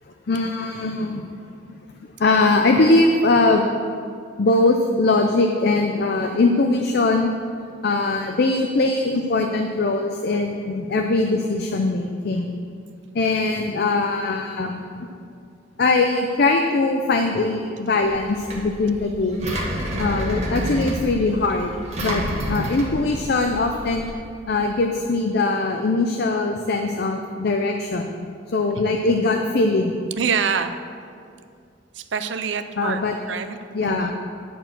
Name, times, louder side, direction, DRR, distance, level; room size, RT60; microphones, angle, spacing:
voice 1, 0.3-1.2 2.2-3.6 4.4-7.3 7.8-12.5 13.1-15.1 15.8-19.5 20.0-21.7 22.0-24.1 24.5-28.3 28.5-30.0 32.8-33.1 33.7-34.1, left 3 dB, 55° left, 4 dB, 0.5 m, -21 dB
Engine, 18.0-24.1, equal, 35° right, 1.5 m, -29 dB
voice 2, 30.2-30.8 31.9-33.0 33.3-34.1, right 6 dB, 65° right, 9 dB, 0.5 m, -26 dB
10.0 x 4.6 x 7.6 m, 2.3 s
head